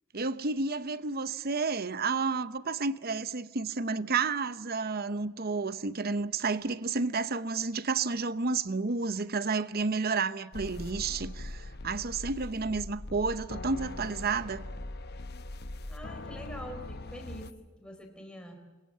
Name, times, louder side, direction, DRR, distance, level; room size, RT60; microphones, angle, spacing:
voice 1, 0.1-14.7, right 4 dB, 45° right, 0.8 m, -31 dB
sound 1, 10.5-17.5, left 2 dB, 45° left, 0.9 m, -41 dB
voice 2, 15.9-17.5 17.8-18.6, equal, 5° left, 3.9 m, -44 dB
29.0 x 22.5 x 7.6 m
head